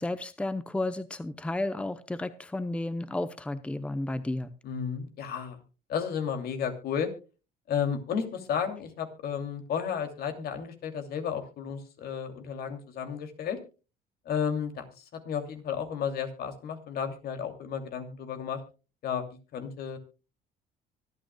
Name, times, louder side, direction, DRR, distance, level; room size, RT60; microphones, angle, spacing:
voice 1, 0.0-4.5, left 2 dB, 5° left, 12 dB, 0.7 m, -32 dB
voice 2, 4.6-5.6 5.9-7.1 7.7-13.6 14.3-18.6 19.0-20.0, left 7 dB, 65° left, 6 dB, 2.7 m, -33 dB
24.5 x 9.0 x 2.3 m, 0.32 s
cardioid pair, 110°, 17 cm